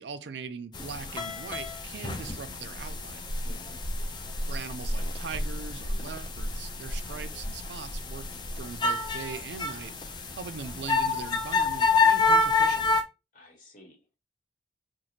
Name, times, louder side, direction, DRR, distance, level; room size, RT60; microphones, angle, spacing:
voice 1, 0.0-3.3 4.5-8.3 8.6-10.0 10.4-13.0, right 5 dB, 65° right, 0.4 m, -40 dB
sound 1, 0.7-13.0, left 3 dB, 25° left, 0.4 m, -28 dB
voice 2, 3.4-3.8 13.3-14.1, left 2 dB, 45° left, 1.3 m, -52 dB
3.0 x 2.4 x 4.2 m
head